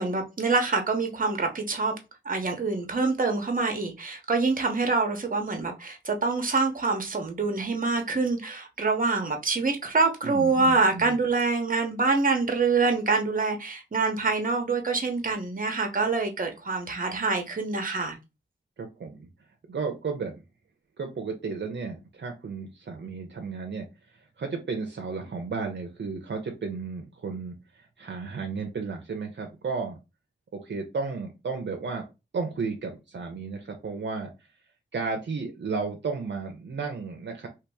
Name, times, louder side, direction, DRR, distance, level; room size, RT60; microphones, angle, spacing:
voice 1, 0.0-1.9 2.2-18.2, right 3 dB, 45° right, 0.9 m, -26 dB
voice 2, 10.2-11.2 18.8-19.3 19.7-20.3 21.0-30.0 30.5-32.1 32.3-34.3 34.9-37.5, right 4 dB, 60° right, 0.6 m, -33 dB
3.0 x 2.9 x 3.4 m
wide cardioid pair, 80°, 21 cm